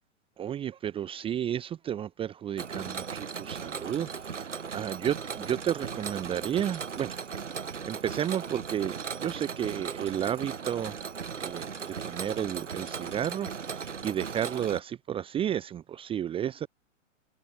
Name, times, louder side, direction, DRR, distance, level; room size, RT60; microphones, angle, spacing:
voice 1, 0.4-7.3 7.8-11.0 11.4-16.7, right 10 dB, 15° right, 1.4 m, -32 dB
Mechanisms, 2.6-14.8, right 6 dB, 65° right, 3.5 m, -37 dB
figure-of-eight pair, 115°, 38 cm